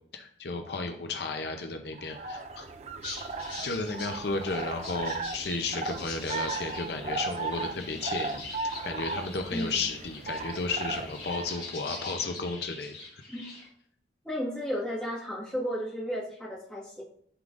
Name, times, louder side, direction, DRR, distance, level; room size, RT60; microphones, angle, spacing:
voice 1, 0.1-2.7 3.6-8.4 8.8-12.9, left 3 dB, 70° left, 5 dB, 0.6 m, -33 dB
sound 1, 1.9-11.7, right 3 dB, 35° right, 0.3 m, -37 dB
sound 2, 3.0-13.7, left 3 dB, 30° left, 2.0 m, -43 dB
voice 2, 9.5-9.9 13.3-13.5 14.2-17.0, equal, 5° left, -6 dB, 1.6 m, -33 dB
11.0 x 3.7 x 2.5 m, 0.63 s
head